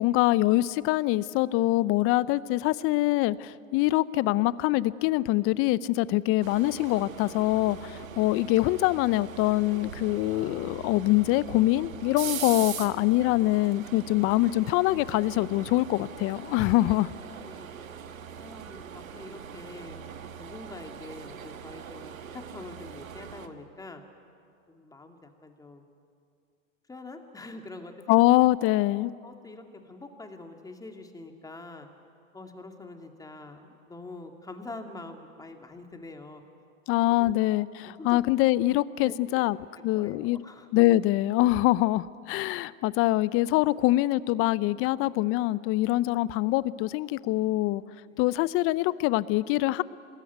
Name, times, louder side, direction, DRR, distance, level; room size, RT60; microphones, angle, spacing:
voice 1, 0.0-17.1 28.1-29.1 36.9-39.6 39.8-40.4 40.7-47.8 48.2-49.8, left 17 dB, 35° left, 19 dB, 0.6 m, -24 dB
sound 1, 6.4-23.5, right 8 dB, 90° right, 1.6 m, -41 dB
voice 2, 17.3-17.7 18.4-20.0 20.4-24.1 24.7-25.9 26.9-28.2 29.2-31.9 32.3-36.4 37.1-37.3 37.8-38.2 39.0-39.5 39.9-40.7 48.1-48.2, left 2 dB, 10° left, 5 dB, 2.3 m, -45 dB
26.5 x 20.0 x 9.4 m, 2.4 s
hypercardioid pair, 115°, 39 cm